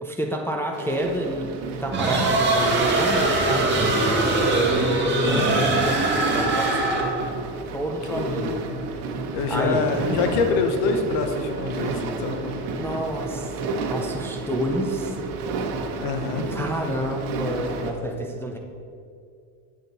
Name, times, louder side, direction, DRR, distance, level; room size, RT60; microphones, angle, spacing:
voice 1, 0.0-4.2 4.7-6.9 7.7-8.7 9.5-10.2 12.8-13.5 13.8-15.2 16.5-18.6, equal, 5° left, 0 dB, 0.5 m, -29 dB
sound 1, 0.7-17.9, right 3 dB, 75° right, 1.2 m, -32 dB
sound 2, 1.9-7.3, right 2 dB, 25° right, 1.6 m, -22 dB
voice 2, 5.2-5.8 8.1-8.8 9.3-13.0 16.0-16.5, left 4 dB, 65° left, 5 dB, 1.1 m, -26 dB
8.1 x 4.0 x 6.8 m, 2.4 s
cardioid pair, 120°, 45 cm